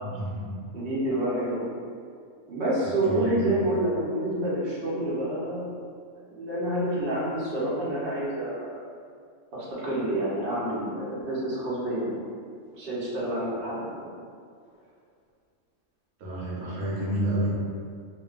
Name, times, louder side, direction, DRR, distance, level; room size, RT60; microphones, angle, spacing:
voice 1, 0.0-0.6 2.8-3.5 16.2-17.5, right 1 dB, 85° right, -6 dB, 1.0 m, -30 dB
voice 2, 0.7-1.6 2.5-5.7 6.3-8.8 9.5-12.2 12.7-14.1, right 1 dB, 55° right, -8 dB, 0.8 m, -28 dB
2.6 x 2.2 x 2.4 m, 2.2 s
omnidirectional pair, 1.3 m